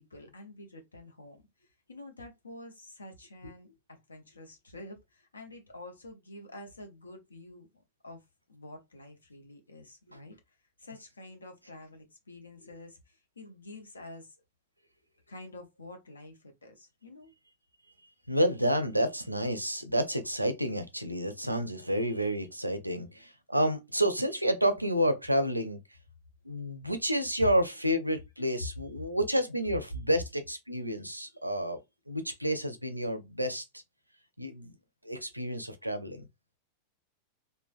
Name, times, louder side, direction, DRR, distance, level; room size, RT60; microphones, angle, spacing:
voice 1, 0.0-1.4 1.9-7.7 8.0-8.2 8.5-14.3 15.3-17.3 21.5-21.9, left 2 dB, 75° left, 0.7 m, -48 dB
voice 2, 18.3-25.8 26.4-31.8 32.1-33.6 34.4-34.7 35.0-36.2, equal, 90° right, 0.4 m, -30 dB
3.2 x 2.1 x 2.4 m
figure-of-eight pair, 90°, 0 cm